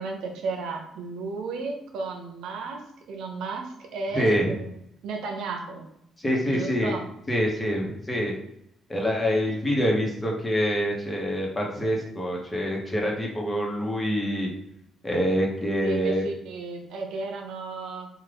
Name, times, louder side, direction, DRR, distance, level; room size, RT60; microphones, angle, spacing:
voice 1, 0.0-4.7 5.0-5.9 6.5-7.1 15.8-18.1, right 4 dB, 85° right, 3 dB, 0.7 m, -33 dB
voice 2, 4.1-4.5 6.2-6.9 7.3-8.3 8.9-14.5 15.0-16.2, equal, 20° left, -1 dB, 1.0 m, -25 dB
3.7 x 2.4 x 3.4 m, 0.78 s
cardioid pair, 90°, 0 cm